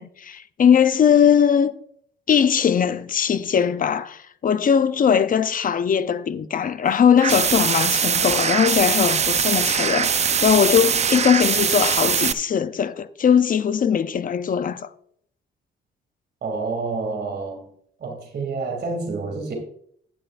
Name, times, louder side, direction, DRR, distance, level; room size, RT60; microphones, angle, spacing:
voice 1, 0.0-1.7 2.3-14.9, left 8 dB, 45° left, 0.7 m, -20 dB
sound 1, 7.2-12.3, right 7 dB, 35° right, 0.5 m, -21 dB
voice 2, 16.4-17.6 18.0-19.5, right 3 dB, 55° right, 2.9 m, -28 dB
12.0 x 9.6 x 2.6 m
cardioid pair, 90°, 20 cm